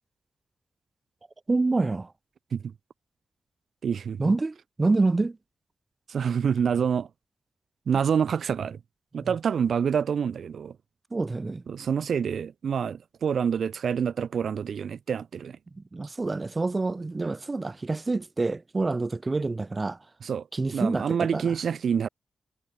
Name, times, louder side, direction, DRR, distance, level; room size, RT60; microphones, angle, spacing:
voice 1, 1.5-2.1 4.2-5.4 9.2-9.3 11.1-11.6 15.7-20.0 20.5-21.5, right 3 dB, 30° right, 0.7 m, -27 dB
voice 2, 3.8-4.3 6.1-7.1 7.9-8.8 9.1-10.7 11.7-15.6 20.2-20.5 20.7-22.1, right 7 dB, 80° right, 1.0 m, -27 dB
wide cardioid pair, 125°, 0 cm